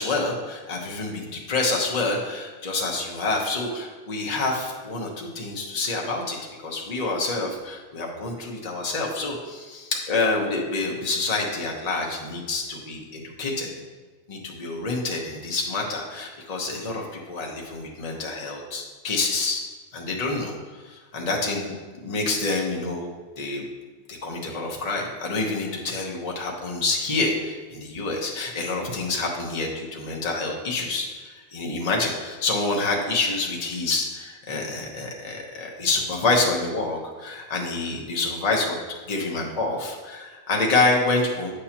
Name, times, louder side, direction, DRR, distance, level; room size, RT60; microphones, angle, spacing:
voice 1, 0.0-6.4 6.6-13.7 14.3-19.6 19.9-21.7 22.0-23.6 24.1-38.8 39.1-41.5, left 3 dB, 30° left, -1 dB, 1.0 m, -27 dB
8.3 x 6.5 x 2.9 m, 1.4 s
omnidirectional pair, 1.4 m